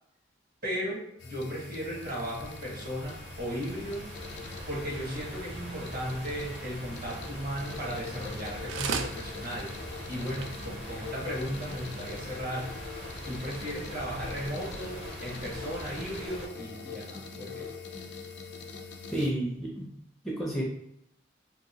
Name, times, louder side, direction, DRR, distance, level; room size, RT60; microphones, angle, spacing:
voice 1, 0.6-4.1 4.7-9.8 10.1-12.8 13.3-17.7, equal, 50° right, -4 dB, 1.1 m, -36 dB
sound 1, 1.2-19.3, left 4 dB, 70° left, 0.4 m, -44 dB
sound 2, 1.3-16.5, right 1 dB, 35° right, 0.6 m, -43 dB
sound 3, 8.3-8.4 8.7-9.2 9.7-9.8 10.1-10.2 10.4-10.5 11.1-11.2, right 6 dB, 90° right, 0.3 m, -32 dB
voice 2, 19.1-19.9 20.2-20.6, right 1 dB, ahead, -4 dB, 0.4 m, -31 dB
2.7 x 2.6 x 2.7 m, 0.77 s
head